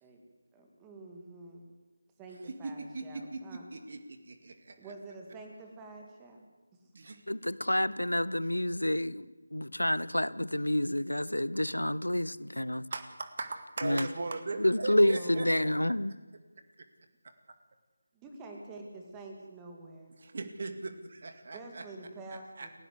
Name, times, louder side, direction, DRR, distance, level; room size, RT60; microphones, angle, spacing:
voice 1, 0.5-1.7 2.2-3.7 4.8-6.5 8.2-8.5 15.0-15.8 18.1-20.1 21.5-22.7, right 2 dB, 10° right, 2 dB, 2.5 m, -47 dB
voice 2, 2.5-4.8 6.9-7.2 12.9-15.5 20.2-21.8 22.6-22.7, right 3 dB, 45° right, 7 dB, 2.1 m, -39 dB
voice 3, 7.3-12.8 13.8-14.1 14.6-16.1, left 1 dB, 85° left, 18 dB, 0.9 m, -29 dB
29.5 x 11.5 x 8.2 m, 1.3 s
figure-of-eight pair, 160°, 0 cm